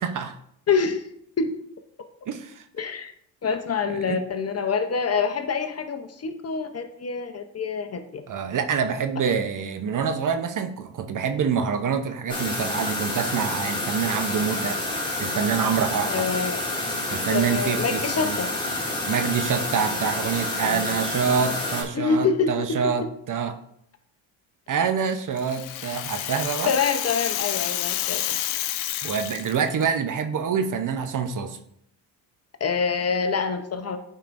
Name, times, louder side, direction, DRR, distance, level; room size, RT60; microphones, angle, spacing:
voice 1, 0.0-0.4 2.3-2.6 3.9-4.2 8.3-14.8 15.2-16.3 17.1-18.4 19.1-23.6 24.7-26.7 28.7-31.6, right 6 dB, 40° right, 9 dB, 0.7 m, -26 dB
voice 2, 0.7-1.0 1.4-1.5 2.8-3.1 3.4-8.2 16.1-16.6 17.3-18.5 20.6-20.9 21.9-23.1 26.2-26.3 26.7-28.4 32.6-34.0, left 5 dB, 30° left, 8 dB, 0.8 m, -26 dB
sound 1, 12.3-21.8, left 1 dB, 10° left, 2.2 m, -28 dB
Rattle (instrument), 25.1-29.8, left 13 dB, 80° left, 0.6 m, -29 dB
9.2 x 4.7 x 2.6 m, 0.72 s
supercardioid pair, 75°, 47 cm